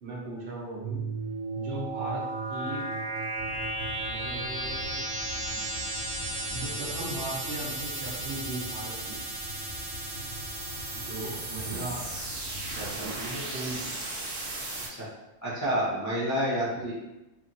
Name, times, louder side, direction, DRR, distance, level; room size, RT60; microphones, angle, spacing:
voice 1, 0.0-1.0 1.5-2.2 2.5-2.9 4.1-5.0 6.5-9.2 10.9-12.0 12.7-14.0, right 2 dB, 55° right, -4 dB, 1.0 m, -38 dB
sound 1, 0.8-14.9, right 2 dB, 85° right, 1.0 m, -35 dB
sound 2, 3.3-13.0, left 2 dB, 55° left, 0.7 m, -43 dB
voice 2, 12.8-13.1 14.9-15.1 15.4-17.0, equal, 20° left, -10 dB, 0.5 m, -29 dB
2.8 x 2.5 x 2.6 m, 0.99 s
omnidirectional pair, 1.3 m